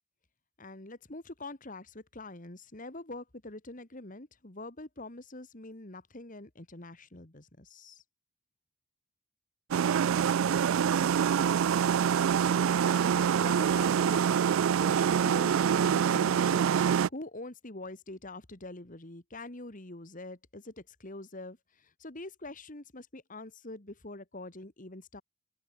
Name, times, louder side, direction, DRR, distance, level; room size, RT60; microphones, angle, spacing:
voice 1, 0.6-8.0 12.8-16.6 17.1-25.2, left 2 dB, 40° left, 2.0 m, -45 dB
sound 1, 9.7-17.1, right 8 dB, 70° right, 0.3 m, -25 dB
open air
head